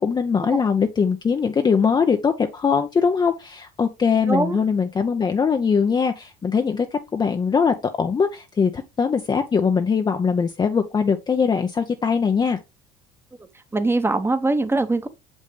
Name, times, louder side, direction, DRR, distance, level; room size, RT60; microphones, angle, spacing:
voice 1, 0.0-12.6, left 6 dB, 25° left, 0.6 m, -21 dB
voice 2, 4.3-4.6 13.7-15.1, right 2 dB, 15° right, 1.0 m, -22 dB
6.3 x 5.3 x 3.2 m
supercardioid pair, 85°, 18 cm